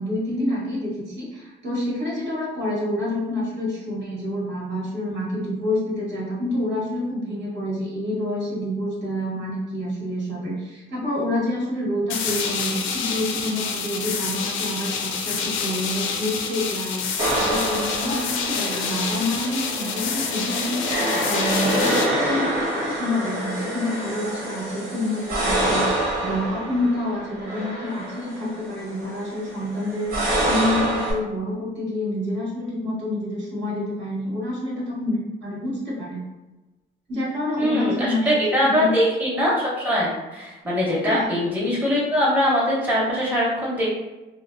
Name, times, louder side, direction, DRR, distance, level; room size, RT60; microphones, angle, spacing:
voice 1, 0.0-17.0 17.4-20.9 21.2-25.9 26.2-36.2 37.1-38.3 38.6-38.9 41.0-41.3, left 1 dB, 65° right, -5 dB, 1.2 m, -28 dB
sound 1, 12.1-22.1, left 6 dB, 80° left, 0.4 m, -28 dB
sound 2, 17.2-31.1, right 1 dB, 85° right, 0.8 m, -27 dB
voice 2, 37.6-43.9, equal, 10° right, -6 dB, 0.9 m, -22 dB
2.9 x 2.1 x 2.4 m, 1.1 s
cardioid pair, 90°, 20 cm